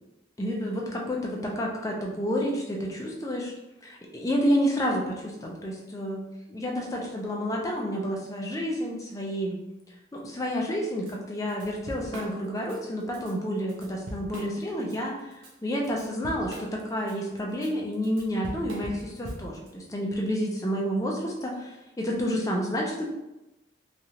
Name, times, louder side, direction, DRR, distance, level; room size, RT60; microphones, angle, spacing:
voice 1, 0.4-3.5 3.8-6.2 6.5-9.6 10.1-15.3 15.6-23.1, equal, 15° left, -1 dB, 0.4 m, -29 dB
Drum kit / Drum, 11.1-11.2 11.5-12.8 13.1-13.3 13.7-15.0 15.3-19.7, right 1 dB, 80° right, 0.6 m, -40 dB
3.1 x 2.4 x 2.7 m, 0.97 s
head